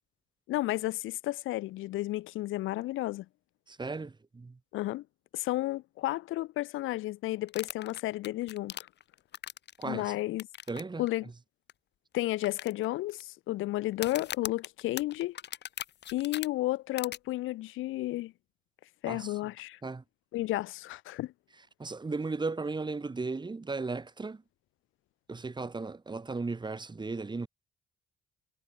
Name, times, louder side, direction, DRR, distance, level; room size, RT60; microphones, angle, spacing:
voice 1, 0.5-3.2 4.7-5.0 5.3-8.7 9.8-10.5 11.0-11.2 12.1-15.3 16.1-18.3 19.0-19.8 20.3-21.3, left 17 dB, 90° left, 1.2 m, -32 dB
voice 2, 3.7-4.6 9.8-10.1 10.7-11.3 19.1-19.3 19.8-20.0 21.8-24.4 25.3-27.5, right 3 dB, 20° right, 1.7 m, -36 dB
sound 1, 7.5-9.8 10.4-10.8 11.1-11.2 11.7-11.8 12.4-13.2 13.9-16.5 17.0-17.2, left 10 dB, 60° left, 1.3 m, -39 dB
cardioid pair, 90°, 20 cm